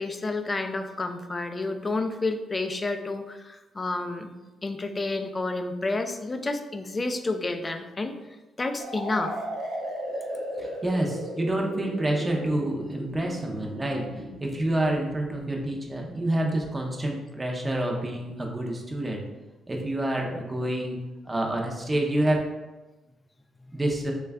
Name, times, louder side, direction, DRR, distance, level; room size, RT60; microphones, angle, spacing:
voice 1, 0.0-8.1 8.6-9.4, left 2 dB, 25° left, 7 dB, 0.3 m, -30 dB
sound 1, 8.8-16.5, right 1 dB, 70° right, 0.9 m, -36 dB
voice 2, 10.6-14.1 14.4-19.2 19.7-22.4 23.7-24.1, right 1 dB, 20° right, 1 dB, 0.6 m, -28 dB
3.1 x 2.2 x 3.4 m, 1.1 s
cardioid pair, 90°, 0 cm